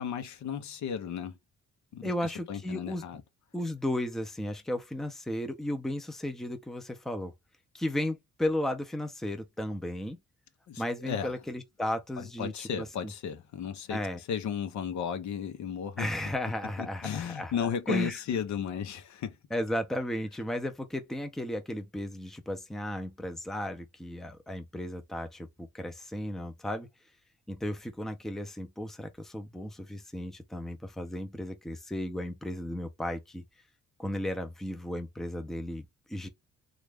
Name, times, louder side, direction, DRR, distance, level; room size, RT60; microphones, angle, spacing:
voice 1, 0.0-1.4 1.9-3.2 10.7-11.3 12.2-16.1 16.8-19.4, left 7 dB, 65° left, 0.8 m, -35 dB
voice 2, 2.0-3.0 3.5-7.3 7.7-10.2 10.8-13.1 13.9-14.2 16.0-18.2 19.5-26.9 27.5-33.4 34.0-36.3, left 1 dB, ahead, 0.6 m, -34 dB
3.0 x 2.4 x 3.4 m
cardioid pair, 90°, 30 cm